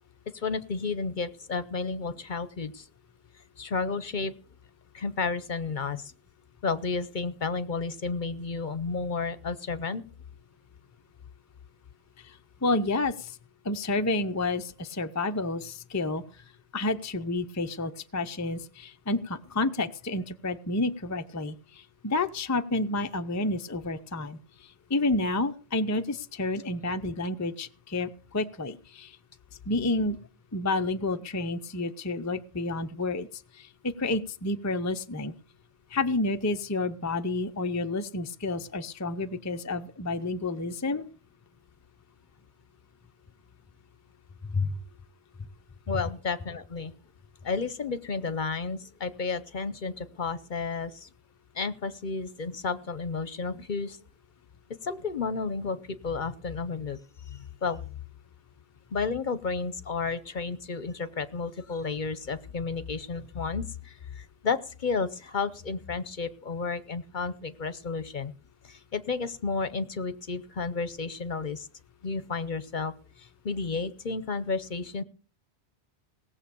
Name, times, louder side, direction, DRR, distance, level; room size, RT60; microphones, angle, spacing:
voice 1, 0.3-2.9 3.6-4.3 4.9-6.1 6.6-10.0 45.9-46.9 47.4-51.1 51.5-54.0 54.8-57.0 57.3-57.9 58.9-68.3 68.6-71.7 72.0-72.9 73.2-75.0, left 4 dB, 50° left, 14 dB, 0.9 m, -32 dB
voice 2, 12.6-13.4 13.6-16.2 16.7-24.4 24.9-29.2 29.7-30.2 30.5-33.3 33.5-35.3 35.9-41.1 44.5-44.7, left 2 dB, 20° left, 8 dB, 0.5 m, -30 dB
18.0 x 7.3 x 6.9 m, 0.40 s
omnidirectional pair, 1.1 m